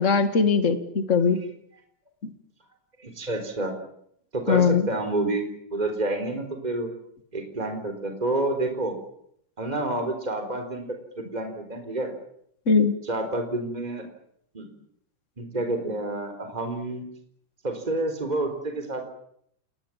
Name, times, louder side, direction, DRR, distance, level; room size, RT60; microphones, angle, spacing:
voice 1, 0.0-1.4 4.5-4.9 12.7-12.9, left 5 dB, 30° left, 9 dB, 1.8 m, -20 dB
voice 2, 3.0-3.7 4.3-5.4 5.7-6.9 7.3-9.0 9.6-10.9 11.2-12.1 13.0-14.0 14.5-14.7 15.4-17.0 17.6-19.1, right 2 dB, 15° right, 6 dB, 3.8 m, -29 dB
28.5 x 20.0 x 7.5 m, 0.70 s
omnidirectional pair, 3.6 m